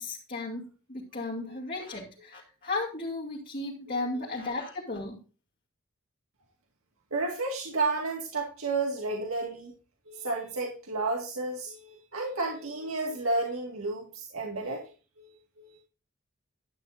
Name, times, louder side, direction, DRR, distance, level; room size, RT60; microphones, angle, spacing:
voice 1, 0.0-5.2, left 2 dB, 40° left, -3 dB, 2.7 m, -35 dB
voice 2, 3.9-4.2 7.1-9.7 10.1-14.9 15.2-15.8, right 3 dB, 80° right, 0 dB, 2.1 m, -32 dB
12.5 x 9.6 x 2.7 m, 0.35 s
head